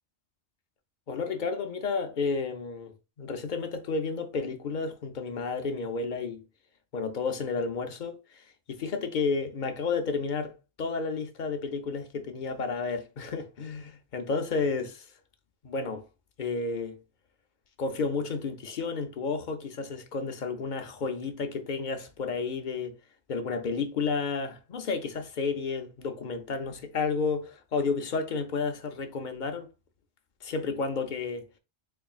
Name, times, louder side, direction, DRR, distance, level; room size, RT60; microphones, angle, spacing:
voice 1, 1.1-2.9 3.2-6.4 6.9-8.4 8.7-15.1 15.6-16.1 16.4-17.0 17.8-22.9 23.3-29.7 30.4-31.4, left 4 dB, 50° left, 0.6 m, -31 dB
4.0 x 3.3 x 2.4 m
omnidirectional pair, 1.2 m